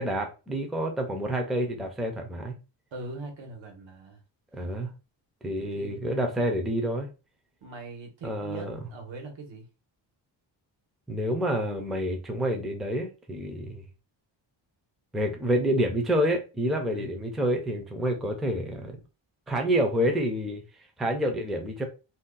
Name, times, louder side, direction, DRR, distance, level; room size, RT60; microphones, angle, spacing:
voice 1, 0.0-2.6 4.5-4.9 5.4-7.1 8.2-8.8 11.1-13.8 15.1-19.0 19.5-20.6 21.0-21.8, equal, ahead, 0.4 m, -28 dB
voice 2, 2.9-4.2 5.7-6.0 7.6-9.7 16.9-17.1, right 2 dB, 80° right, 1.3 m, -41 dB
2.6 x 2.3 x 3.7 m
wide cardioid pair, 180°, 45 cm